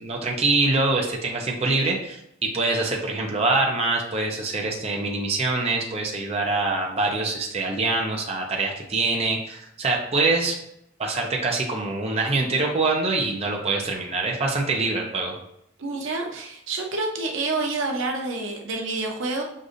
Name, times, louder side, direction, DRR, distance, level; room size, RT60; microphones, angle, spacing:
voice 1, 0.0-10.6 11.0-15.3, right 3 dB, 35° right, 0 dB, 0.6 m, -24 dB
voice 2, 15.8-19.4, right 3 dB, 85° right, 2 dB, 0.7 m, -28 dB
6.3 x 2.6 x 2.5 m, 0.79 s
head